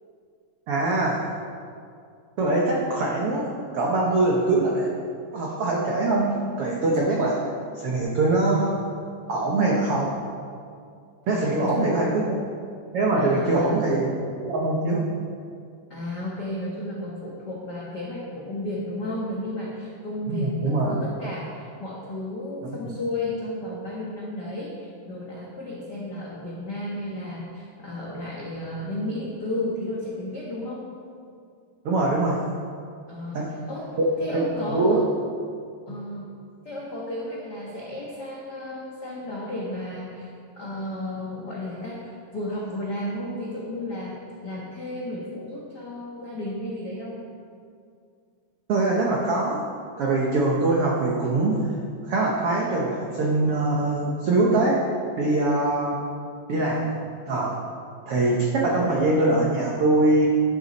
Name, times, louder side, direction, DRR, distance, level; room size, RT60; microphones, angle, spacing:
voice 1, 0.7-1.3 2.4-4.9 5.3-8.8 9.3-10.2 11.3-12.4 12.9-15.0 20.3-21.0 22.6-23.0 31.8-32.5 33.3-33.5 34.0-34.1 34.3-34.5 34.7-35.0 35.9-36.0 48.7-49.7 50.0-51.7 52.0-54.9 55.2-56.0 56.5-56.9 57.3-57.6 58.1-60.3, right 2 dB, 85° right, -2 dB, 1.2 m, -23 dB
voice 2, 11.3-12.1 13.2-13.8 15.9-30.9 33.1-35.2 35.9-36.3 36.6-40.3 40.6-47.2, left 1 dB, 85° left, -5 dB, 0.9 m, -33 dB
11.5 x 10.5 x 4.1 m, 2.3 s
omnidirectional pair, 4.2 m